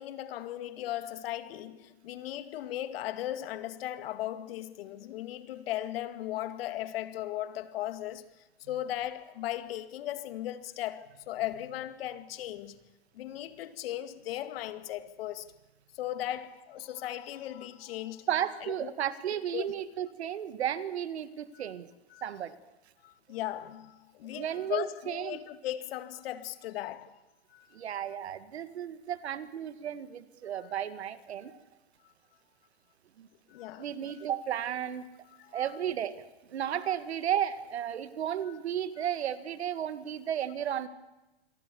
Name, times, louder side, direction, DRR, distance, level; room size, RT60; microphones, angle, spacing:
voice 1, 0.0-12.8 13.1-15.5 15.9-18.3 18.6-18.9 19.3-19.7 21.5-21.7 22.1-22.3 23.0-27.2 27.5-27.8 30.6-30.7 33.5-34.3 35.3-35.8 38.5-38.6, left 13 dB, 65° left, 2.3 m, -37 dB
voice 2, 18.3-21.9 22.2-22.6 24.2-25.4 27.7-31.6 33.2-33.3 33.8-35.1 35.5-36.2 36.5-40.9, right 10 dB, 85° right, 2.0 m, -33 dB
27.5 x 22.5 x 7.1 m
hypercardioid pair, 120°, 32 cm